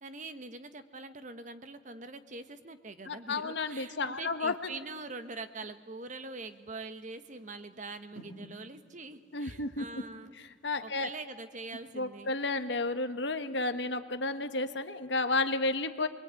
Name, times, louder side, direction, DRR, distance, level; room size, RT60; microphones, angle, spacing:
voice 1, 0.0-10.3 10.8-12.3, right 3 dB, 40° right, 10 dB, 1.2 m, -44 dB
voice 2, 3.1-4.6 9.3-9.9 10.4-11.1 11.9-16.1, left 3 dB, 65° left, 9 dB, 1.3 m, -32 dB
sound 1, 3.8-12.3 12.7-12.8, equal, 85° right, 6.2 m, -57 dB
25.0 x 22.5 x 9.1 m, 1.5 s
head